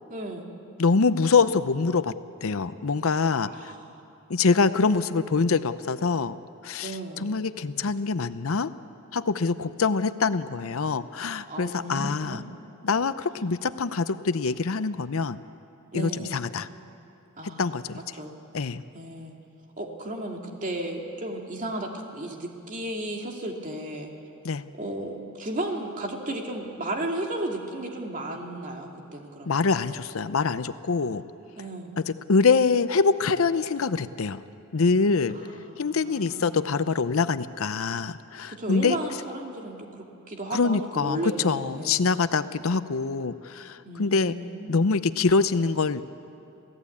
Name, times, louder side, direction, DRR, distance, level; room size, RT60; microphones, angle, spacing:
voice 1, 0.1-0.5 3.5-3.8 6.8-7.4 11.5-12.5 13.4-13.5 15.9-16.4 17.4-18.3 18.9-19.4 19.8-24.1 24.8-29.7 31.6-32.0 35.3-36.5 38.5-42.0 43.8-44.9, right 1 dB, 35° right, 1 dB, 2.5 m, -34 dB
voice 2, 0.8-2.1 2.4-3.7 4.3-6.4 6.6-6.9 7.2-8.7 9.1-12.4 12.8-15.4 15.9-16.7 17.6-18.0 18.5-18.8 24.4-24.6 29.5-31.2 32.1-34.4 34.7-35.4 35.8-39.0 40.5-44.3 44.7-46.0, left 4 dB, 65° left, 13 dB, 0.7 m, -24 dB
27.5 x 16.5 x 8.5 m, 2.7 s
head